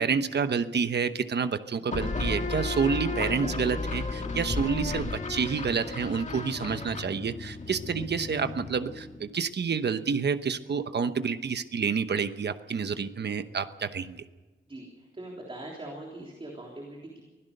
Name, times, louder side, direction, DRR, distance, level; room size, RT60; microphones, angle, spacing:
voice 1, 0.0-14.2, right 6 dB, 55° right, 10 dB, 1.0 m, -29 dB
sound 1, 1.9-9.3, left 3 dB, 35° left, 1.7 m, -33 dB
voice 2, 15.1-17.2, right 1 dB, 25° right, -1 dB, 3.5 m, -41 dB
23.5 x 16.5 x 6.6 m, 1.2 s
wide cardioid pair, 175°, 20 cm